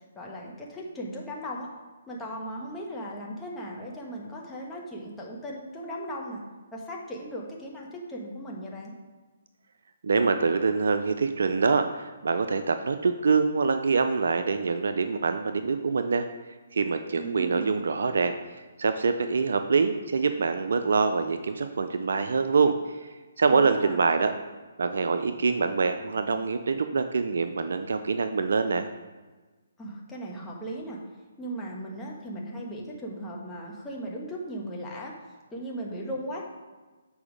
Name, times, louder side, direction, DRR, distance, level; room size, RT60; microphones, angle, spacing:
voice 1, 0.1-1.7 2.1-6.4 6.7-8.9 17.2-17.9 23.5-24.0 29.8-31.0 31.4-35.1 35.5-36.4, right 1 dB, 10° left, -3 dB, 1.2 m, -37 dB
voice 2, 10.0-16.3 16.7-18.3 18.8-23.0 23.4-24.3 24.8-28.9, right 4 dB, 70° right, 8 dB, 0.4 m, -25 dB
7.1 x 4.8 x 5.0 m, 1.3 s
hypercardioid pair, 145°, 0 cm